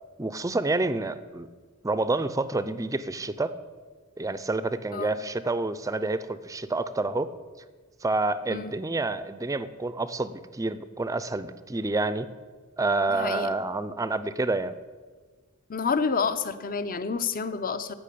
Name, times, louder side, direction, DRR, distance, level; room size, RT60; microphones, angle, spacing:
voice 1, 0.2-1.5 1.8-3.6 4.2-7.3 8.0-12.3 12.8-14.8, right 2 dB, 15° right, 14 dB, 0.5 m, -28 dB
voice 2, 13.1-13.5 15.7-17.9, left 5 dB, 40° left, 12 dB, 0.7 m, -29 dB
16.0 x 5.9 x 8.5 m, 1.5 s
head